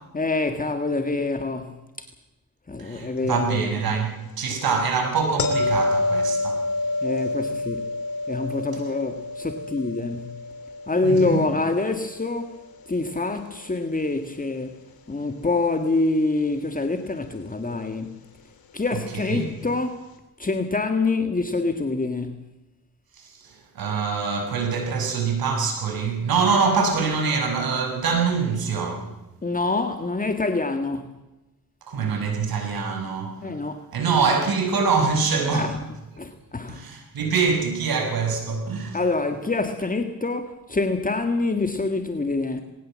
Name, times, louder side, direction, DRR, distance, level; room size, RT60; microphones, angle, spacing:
voice 1, 0.1-2.1 2.7-3.7 7.0-7.9 8.3-10.4 10.9-12.6 12.9-14.7 15.1-18.2 18.7-20.1 20.4-22.5 29.4-31.2 33.4-33.8 35.5-35.8 36.2-36.8 38.9-42.6, left 3 dB, 25° left, 1.8 m, -26 dB
voice 2, 2.8-6.6 11.0-11.4 18.9-19.5 23.2-29.1 31.9-33.5 33.9-35.8 36.7-39.0, right 5 dB, 90° right, 5.9 m, -24 dB
sound 1, 5.4-12.4 17.6-17.8, left 2 dB, 90° left, 3.1 m, -28 dB
20.5 x 18.0 x 7.5 m
cardioid pair, 75°, 35 cm